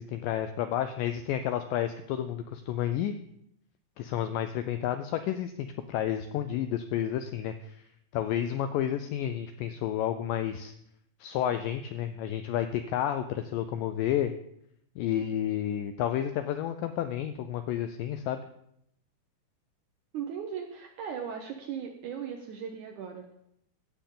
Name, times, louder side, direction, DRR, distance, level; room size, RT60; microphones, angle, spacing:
voice 1, 0.0-3.1 4.0-7.8 8.1-10.7 11.2-14.3 15.0-18.4, left 10 dB, 85° left, 9 dB, 1.9 m, -31 dB
voice 2, 20.1-23.5, right 7 dB, 75° right, 3 dB, 1.8 m, -38 dB
16.0 x 6.9 x 3.7 m, 0.74 s
omnidirectional pair, 4.4 m